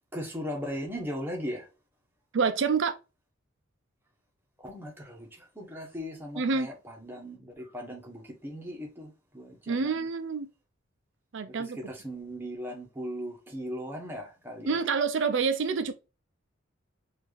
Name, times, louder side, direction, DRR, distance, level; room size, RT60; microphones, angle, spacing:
voice 1, 0.1-1.7 4.6-10.0 11.8-14.7, equal, 10° right, 1.1 m, -38 dB
voice 2, 2.3-3.0 6.4-6.7 9.7-10.5 11.3-11.8 14.6-15.9, right 5 dB, 60° right, 0.5 m, -27 dB
4.4 x 2.6 x 3.1 m
head